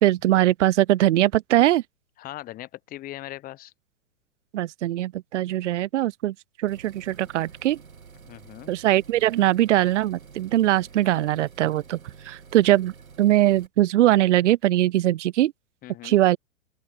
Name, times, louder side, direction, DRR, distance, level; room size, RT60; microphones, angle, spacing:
voice 1, 0.0-1.8 4.5-6.3 6.6-7.8 8.7-12.0 12.3-12.9 13.2-15.5 16.0-16.4, right 14 dB, 60° right, 0.5 m, -21 dB
voice 2, 2.2-3.7 8.3-8.7 15.8-16.2, left 15 dB, 20° left, 0.9 m, -39 dB
sound 1, 6.7-13.7, right 5 dB, 85° right, 2.0 m, -48 dB
open air
figure-of-eight pair, 110°, 41 cm